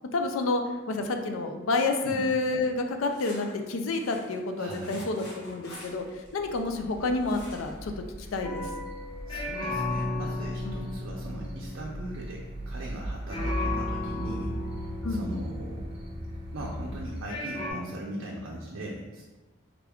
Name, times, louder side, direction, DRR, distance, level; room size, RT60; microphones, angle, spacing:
voice 1, 0.1-6.1 6.3-7.9 8.3-8.6 10.6-10.8 15.0-15.2, left 3 dB, 90° left, 5 dB, 0.4 m, -29 dB
sound 1, 2.6-6.9 7.2-7.9 8.2-8.3 8.6-8.7, left 1 dB, 55° left, 1.0 m, -47 dB
voice 2, 4.6-5.1 9.3-14.5 14.8-16.0 16.5-19.2, right 1 dB, 85° right, -2 dB, 0.5 m, -39 dB
sound 2, 5.9-17.2, equal, 30° right, 0.5 m, -38 dB
sound 3, 8.4-13.0 13.3-16.9 17.3-17.7, left 2 dB, 25° left, 0.4 m, -35 dB
3.6 x 2.3 x 3.5 m, 1.2 s
head